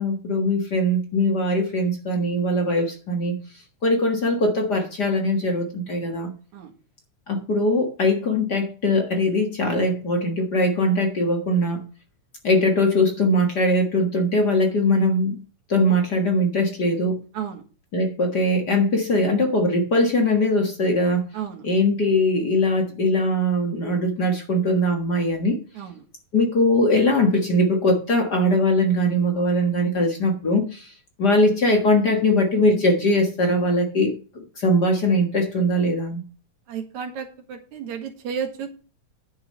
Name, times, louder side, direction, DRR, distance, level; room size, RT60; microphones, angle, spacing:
voice 1, 0.0-3.3 3.8-6.3 7.3-11.8 12.4-15.4 15.7-17.2 17.9-21.3 21.6-25.6 26.3-36.2, left 1 dB, 40° left, 1.8 m, -21 dB
voice 2, 36.7-38.7, right 7 dB, 75° right, 3.0 m, -32 dB
10.0 x 5.8 x 6.5 m
omnidirectional pair, 3.4 m